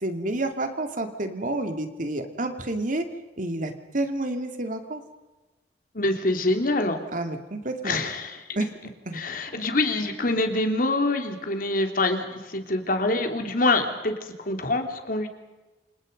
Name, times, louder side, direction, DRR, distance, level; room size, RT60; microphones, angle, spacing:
voice 1, 0.0-3.0 3.4-5.0 7.1-8.0 8.6-8.7 9.1-9.2, right 2 dB, 50° right, 6 dB, 2.7 m, -29 dB
voice 2, 5.9-7.0 7.8-8.4 9.1-14.1 14.4-15.3, left 2 dB, 55° left, 5 dB, 3.3 m, -25 dB
28.5 x 27.0 x 5.4 m, 1.1 s
head